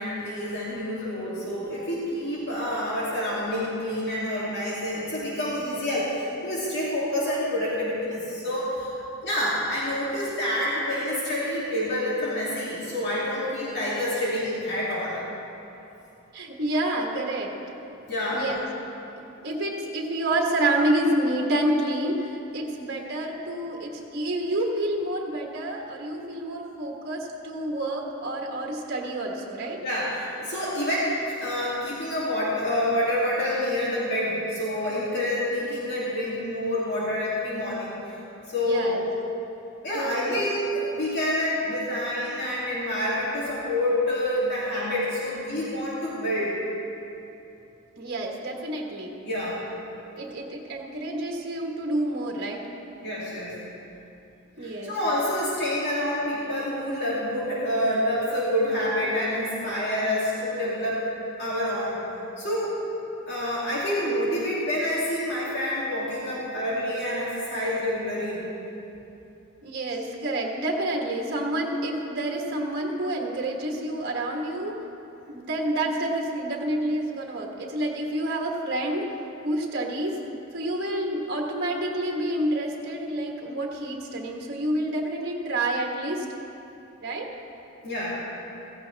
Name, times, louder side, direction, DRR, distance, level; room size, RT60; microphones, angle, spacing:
voice 1, 0.0-8.9 9.2-15.2 18.1-18.4 29.8-38.1 38.5-39.0 39.8-46.5 49.2-49.6 53.0-53.5 54.6-61.0 61.4-62.0 62.4-62.8 63.3-68.4 87.8-88.1, left 1 dB, 55° left, -8 dB, 2.7 m, -27 dB
voice 2, 16.3-17.5 18.3-18.7 19.2-29.8 38.6-39.0 39.9-40.4 48.0-49.1 50.2-52.7 54.6-54.9 67.5-67.6 69.6-74.8 75.3-79.1 79.4-80.2 80.5-86.2 87.0-87.3, right 1 dB, 50° right, 0 dB, 1.4 m, -28 dB
16.0 x 15.5 x 3.4 m, 3.0 s
head